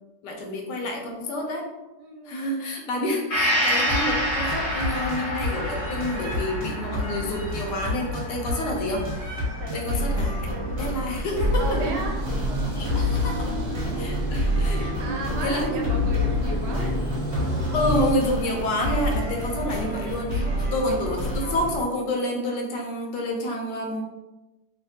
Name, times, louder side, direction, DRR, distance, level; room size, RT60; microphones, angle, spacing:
voice 1, 0.2-1.7 2.3-9.1 9.7-10.5 10.8-11.8 12.8-13.5 14.0-14.8 15.4-16.1 17.7-24.0, left 1 dB, 80° left, 0 dB, 1.2 m, -28 dB
voice 2, 2.0-2.4 9.6-9.9 10.5-10.8 11.6-12.2 12.9-13.6 14.7-17.0 20.4-20.8, right 3 dB, 80° right, 0 dB, 1.2 m, -35 dB
Gong, 3.3-10.9 11.3-11.4, equal, 45° left, 0.7 m, -29 dB
sound 1, 3.9-21.8, left 1 dB, 45° right, 1.1 m, -29 dB
sound 2, 11.4-18.1, equal, 10° right, 0.6 m, -29 dB
3.2 x 2.1 x 2.6 m, 1.0 s
omnidirectional pair, 1.9 m